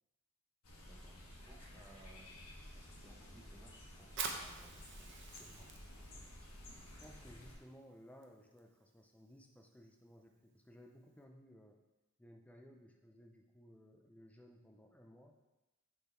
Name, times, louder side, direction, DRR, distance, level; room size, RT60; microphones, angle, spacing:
sound 1, 0.6-7.6, left 1 dB, 80° left, 1.4 m, -54 dB
voice 1, 0.8-2.3 2.7-5.7, right 1 dB, 10° right, -2 dB, 0.9 m, -62 dB
Fire, 4.0-11.2, right 5 dB, 55° right, 0.7 m, -50 dB
voice 2, 7.0-11.8 12.2-15.4, equal, 5° left, 2 dB, 0.4 m, -59 dB
6.8 x 3.8 x 4.4 m, 1.0 s
head